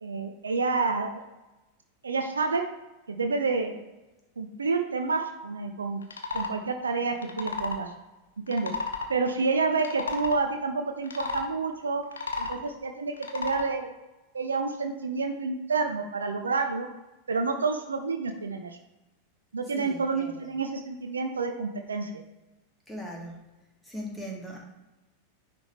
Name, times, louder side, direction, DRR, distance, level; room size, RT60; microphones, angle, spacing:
voice 1, 0.0-1.2 2.0-2.6 3.1-3.8 4.4-6.0 6.3-7.9 8.5-8.7 9.1-12.0 12.4-13.9 14.3-16.9 17.3-18.8 19.5-22.2, right 4 dB, 75° right, 6 dB, 0.5 m, -29 dB
sound 1, 6.0-6.5 7.2-7.8 8.5-9.1 9.7-10.4 11.0-11.5 12.0-12.6 13.2-13.7, left 3 dB, 70° left, 0.8 m, -33 dB
voice 2, 19.8-20.4 22.9-23.4 23.8-24.6, equal, ahead, -2 dB, 1.7 m, -39 dB
9.8 x 3.4 x 3.2 m, 1.0 s
figure-of-eight pair, 90°, 0 cm